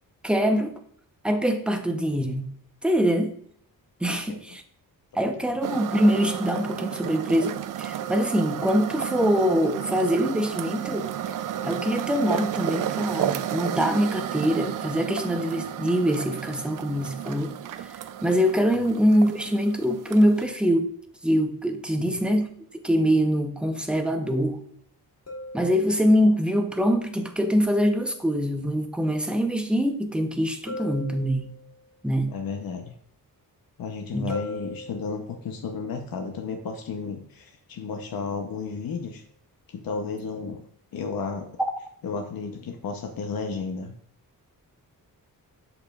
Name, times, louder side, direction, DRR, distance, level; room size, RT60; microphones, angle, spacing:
voice 1, 0.2-0.7 1.2-2.5 2.8-3.3 4.0-4.6 5.1-11.1 11.6-20.9 21.2-22.5 22.8-24.6 25.5-31.5 32.0-32.3 34.1-34.3, equal, 5° right, 5 dB, 0.7 m, -24 dB
voice 2, 4.1-4.6 5.1-5.2 22.0-22.2 32.3-32.9 33.8-39.2 39.7-40.6 40.9-41.5 42.0-43.9, left 5 dB, 70° left, 3 dB, 0.8 m, -33 dB
sound 1, 5.6-20.5, right 10 dB, 60° right, 0.4 m, -32 dB
sound 2, 25.3-26.4 30.7-31.9 34.3-35.5 38.8-39.0, left 1 dB, 45° left, 1.5 m, -38 dB
7.7 x 6.6 x 2.3 m, 0.65 s
wide cardioid pair, 135°, 36 cm